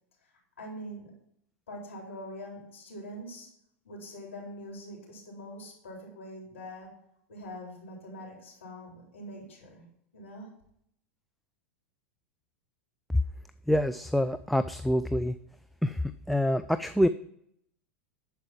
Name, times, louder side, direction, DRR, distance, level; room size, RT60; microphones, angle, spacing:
voice 1, 0.6-1.1 1.7-3.5 3.8-6.9 7.3-9.9 10.1-10.5, equal, 75° left, -1 dB, 4.1 m, -43 dB
voice 2, 13.7-15.3 15.8-16.0 16.3-17.1, equal, ahead, 10 dB, 0.4 m, -26 dB
11.5 x 4.7 x 5.9 m, 0.73 s
figure-of-eight pair, 90°, 7 cm